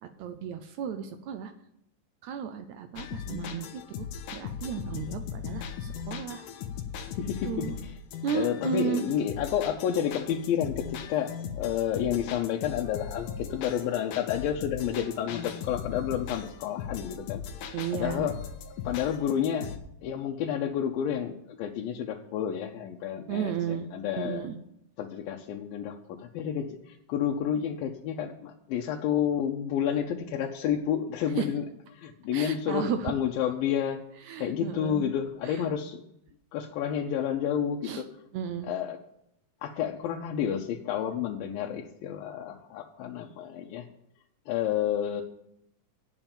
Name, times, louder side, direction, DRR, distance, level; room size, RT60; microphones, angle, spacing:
voice 1, 0.0-1.5 2.2-6.5 7.4-7.8 8.2-9.0 17.7-18.3 23.3-23.9 24.2-24.6 31.4-31.5 32.3-33.1 34.2-35.0 35.4-35.7 37.8-38.0 38.3-38.7, right 8 dB, 80° right, 8 dB, 1.7 m, -34 dB
sound 1, 3.0-19.8, left 7 dB, 75° left, 2.4 m, -38 dB
voice 2, 7.2-7.9 8.3-18.3 18.8-19.7 20.0-24.5 25.0-31.7 31.9-34.0 34.4-36.0 36.5-38.1 38.6-39.0 39.6-43.9 44.5-45.2, left 9 dB, 90° left, 1 dB, 2.6 m, -30 dB
9.0 x 7.4 x 8.8 m, 0.77 s
omnidirectional pair, 4.0 m